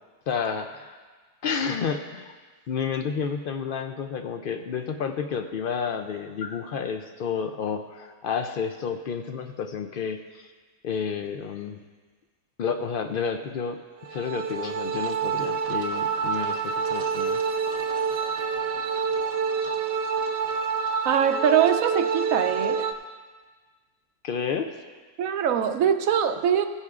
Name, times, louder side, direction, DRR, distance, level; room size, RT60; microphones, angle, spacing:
voice 1, 0.3-1.0 1.4-2.3 2.7-10.5 10.8-11.8 12.6-13.8 14.1-17.4 24.2-24.7, left 6 dB, 70° left, 6 dB, 0.5 m, -30 dB
sound 1, 14.0-22.9, right 5 dB, 60° right, 0.9 m, -27 dB
voice 2, 21.0-22.9 25.2-26.7, right 8 dB, 85° right, 8 dB, 1.0 m, -23 dB
16.5 x 9.8 x 2.4 m, 1.4 s
omnidirectional pair, 1.4 m